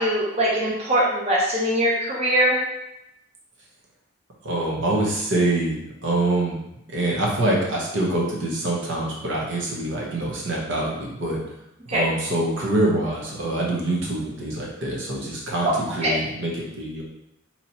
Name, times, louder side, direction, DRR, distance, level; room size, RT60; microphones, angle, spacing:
voice 1, 0.0-2.6 11.9-12.0 16.0-16.1, equal, 35° right, -5 dB, 0.7 m, -21 dB
voice 2, 4.4-6.6 6.9-11.4 11.9-17.0, right 2 dB, 70° right, -3 dB, 0.9 m, -25 dB
3.0 x 2.9 x 4.1 m, 0.84 s
head